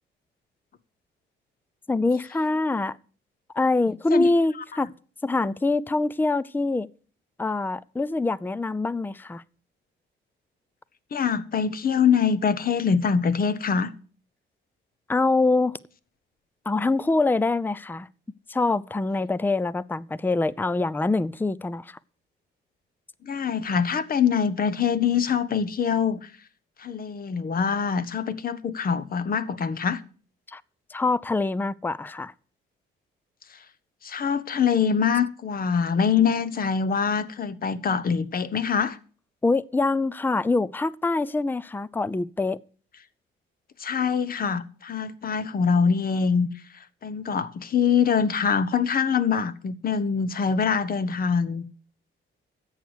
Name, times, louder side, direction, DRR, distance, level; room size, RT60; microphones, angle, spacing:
voice 1, 1.9-3.0 3.5-4.9 5.2-6.9 7.4-9.4 15.1-15.8 16.7-18.1 18.5-22.0 30.5-30.6 30.9-32.3 39.4-42.6, left 3 dB, 10° left, 0.5 m, -24 dB
voice 2, 11.1-13.9 23.2-26.3 26.8-30.0 33.5-33.6 34.0-39.0 43.8-46.5 46.7-51.6, left 6 dB, 45° left, 1.1 m, -24 dB
11.0 x 8.1 x 8.1 m
cardioid pair, 90°, 20 cm